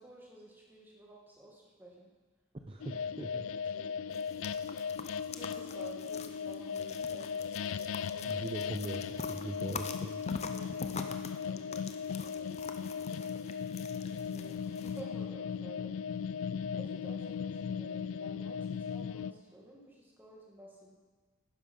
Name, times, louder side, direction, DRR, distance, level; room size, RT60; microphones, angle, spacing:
voice 1, 0.0-2.1 3.7-4.1 5.3-8.4 10.5-13.1 13.5-13.7 14.2-15.9 16.7-20.9, right 1 dB, 10° right, -3 dB, 1.9 m, -53 dB
voice 2, 2.7-3.5 8.2-10.2, right 1 dB, 25° right, 3 dB, 0.6 m, -41 dB
sound 1, 2.8-19.3, left 6 dB, 85° left, 0.4 m, -37 dB
sound 2, 4.1-15.0, left 4 dB, 35° left, 0.6 m, -45 dB
11.5 x 10.0 x 5.4 m, 1.4 s
head